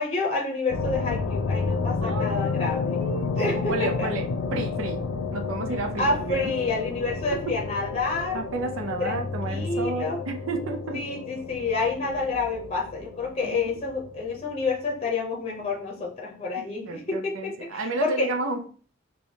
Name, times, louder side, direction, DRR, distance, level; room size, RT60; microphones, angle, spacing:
voice 1, 0.0-3.0 3.4-4.1 6.0-8.4 9.0-10.2 10.9-18.3, left 3 dB, 30° left, -1 dB, 0.7 m, -29 dB
sound 1, 0.7-15.1, left 4 dB, 85° left, 0.4 m, -31 dB
voice 2, 2.0-5.0 5.3-6.5 7.3-7.5 8.3-11.0 13.4-13.6 16.6-18.6, right 3 dB, 75° right, 5 dB, 0.6 m, -32 dB
4.4 x 2.3 x 2.8 m, 0.41 s
head